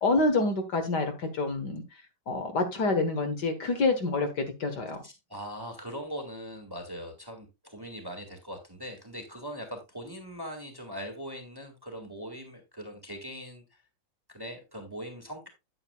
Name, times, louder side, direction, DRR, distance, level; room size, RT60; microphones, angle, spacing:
voice 1, 0.0-1.8 2.3-5.0, left 3 dB, 60° left, 1.9 m, -27 dB
voice 2, 4.9-13.6 14.3-15.5, equal, 10° right, 1.8 m, -41 dB
9.0 x 8.9 x 2.3 m
omnidirectional pair, 2.2 m